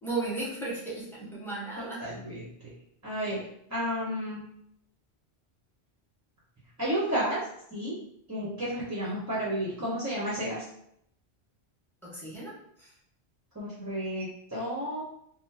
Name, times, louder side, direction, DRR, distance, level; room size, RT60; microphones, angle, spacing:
voice 1, 0.0-2.0 9.0-9.2 12.0-12.9, right 3 dB, ahead, -7 dB, 1.0 m, -36 dB
voice 2, 1.8-2.5 3.0-3.4 3.7-4.4 6.8-7.4 7.7-7.9 8.3-10.6 13.5-15.0, equal, 20° right, -8 dB, 0.7 m, -32 dB
3.7 x 2.1 x 2.7 m, 0.72 s
omnidirectional pair, 1.1 m